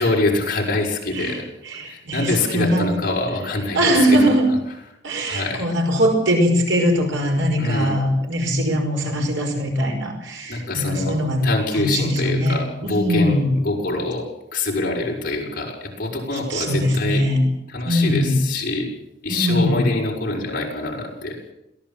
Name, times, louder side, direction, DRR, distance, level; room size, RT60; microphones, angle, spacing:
voice 1, 0.0-1.5 1.8-4.3 5.3-5.7 7.6-8.0 10.5-11.2 11.4-17.2 17.7-18.9 19.2-21.4, left 2 dB, 50° left, -2 dB, 6.3 m, -25 dB
voice 2, 1.7-2.9 3.7-4.5 5.0-11.5 11.7-13.5 16.5-17.5 17.9-18.4 19.3-19.9, equal, 90° right, 2 dB, 5.4 m, -21 dB
22.5 x 17.0 x 7.4 m, 0.86 s
head